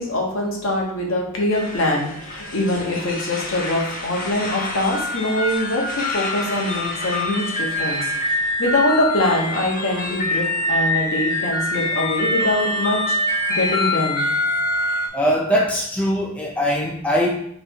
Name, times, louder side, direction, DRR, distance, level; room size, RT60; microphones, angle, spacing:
voice 1, 0.0-14.3, left 1 dB, 60° left, -1 dB, 1.1 m, -23 dB
sound 1, 1.5-15.1, left 2 dB, 40° left, 0.7 m, -25 dB
voice 2, 15.1-17.3, equal, 5° left, -2 dB, 0.4 m, -21 dB
3.4 x 3.4 x 4.3 m, 0.69 s
head